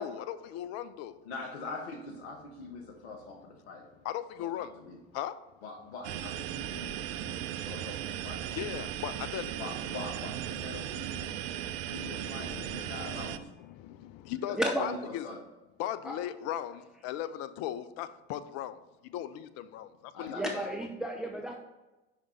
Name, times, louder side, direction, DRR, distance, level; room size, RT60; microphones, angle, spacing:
voice 1, 0.0-1.2 4.0-4.7 5.1-5.4 8.5-9.5 11.6-12.2 12.7-15.3 15.8-18.8 19.0-20.3, left 11 dB, 50° left, 12 dB, 0.5 m, -38 dB
voice 2, 1.2-3.9 4.4-5.0 5.6-8.6 9.6-13.5 14.5-15.4 20.1-20.7, left 3 dB, 70° left, 3 dB, 0.8 m, -43 dB
sound 1, 6.0-13.4, right 11 dB, 55° right, 0.4 m, -37 dB
voice 3, 14.6-14.9 16.0-16.2 20.3-21.6, right 1 dB, ahead, 2 dB, 0.6 m, -32 dB
5.1 x 4.8 x 4.2 m, 1.1 s
figure-of-eight pair, 65°, 33 cm